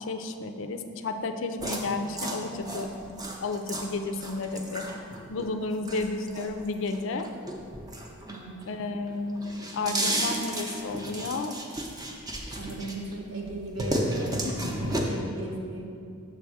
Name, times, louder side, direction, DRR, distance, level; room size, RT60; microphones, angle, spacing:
voice 1, 0.1-4.9 5.3-7.3 8.6-11.6 14.4-14.7, left 3 dB, 65° left, 7 dB, 0.4 m, -32 dB
sound 1, 1.6-8.7 9.1-13.1 13.5-15.0, right 1 dB, 20° right, 0.6 m, -33 dB
voice 2, 8.2-8.6 9.8-10.2 12.6-15.9, right 2 dB, 75° right, 0 dB, 1.1 m, -37 dB
6.9 x 3.5 x 6.2 m, 2.4 s
head